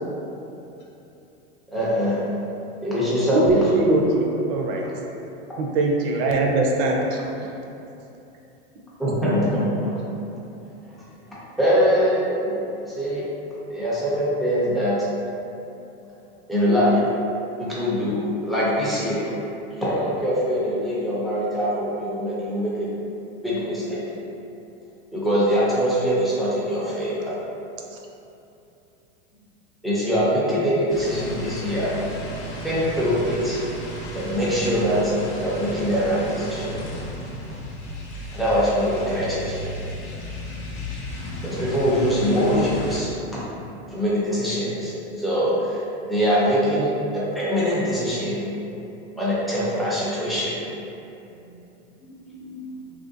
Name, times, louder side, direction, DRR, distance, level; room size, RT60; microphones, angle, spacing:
voice 1, 1.7-2.3 2.8-3.9 9.0-10.0 11.3-13.3 13.7-15.1 16.5-17.1 17.6-19.3 19.7-22.9 23.4-24.0 25.1-27.3 29.8-32.0 32.6-33.6 34.1-36.8 38.3-39.6 41.4-43.4 43.9-48.5 49.2-50.6, equal, ahead, -9 dB, 0.4 m, -23 dB
voice 2, 3.3-4.8 5.6-7.2, right 2 dB, 55° right, 0 dB, 0.5 m, -21 dB
sound 1, 30.9-43.0, equal, 90° left, 0.7 m, -34 dB
voice 3, 40.0-40.6 51.3-52.9, left 1 dB, 45° left, -3 dB, 0.6 m, -43 dB
3.1 x 2.5 x 2.6 m, 2.8 s
supercardioid pair, 140°, 34 cm